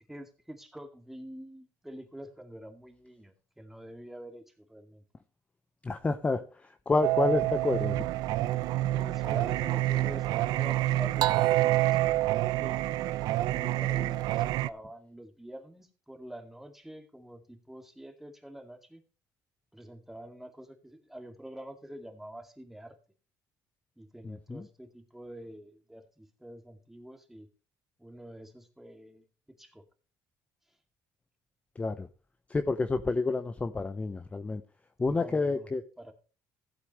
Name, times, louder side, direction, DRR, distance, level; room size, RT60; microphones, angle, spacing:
voice 1, 0.1-5.0 8.9-12.8 13.4-19.0 19.7-22.9 24.0-27.5 28.0-29.2 29.6-29.8 35.0-35.7 36.0-36.1, right 1 dB, 5° right, 2.2 m, -46 dB
voice 2, 5.8-8.1 24.2-24.7 31.8-32.1 32.5-34.6 35.0-35.8, left 3 dB, 20° left, 0.7 m, -29 dB
Singing, 7.0-14.7, right 15 dB, 80° right, 0.5 m, -27 dB
15.5 x 8.3 x 3.1 m
cardioid pair, 115°, 7 cm